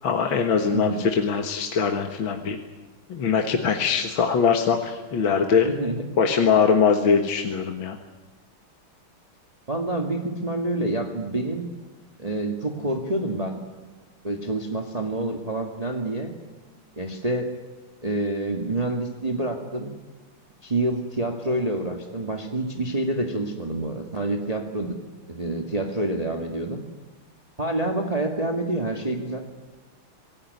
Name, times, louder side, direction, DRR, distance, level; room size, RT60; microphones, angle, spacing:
voice 1, 0.0-2.6 3.1-5.8 6.2-8.0, left 6 dB, 65° left, 5 dB, 2.2 m, -22 dB
voice 2, 5.6-6.0 9.7-11.7 12.2-13.6 14.2-16.3 17.0-17.5 18.0-19.9 20.6-24.9 25.3-26.8 27.6-29.4, right 2 dB, 20° right, 3 dB, 1.9 m, -27 dB
26.5 x 19.0 x 9.5 m, 1.2 s
omnidirectional pair, 2.4 m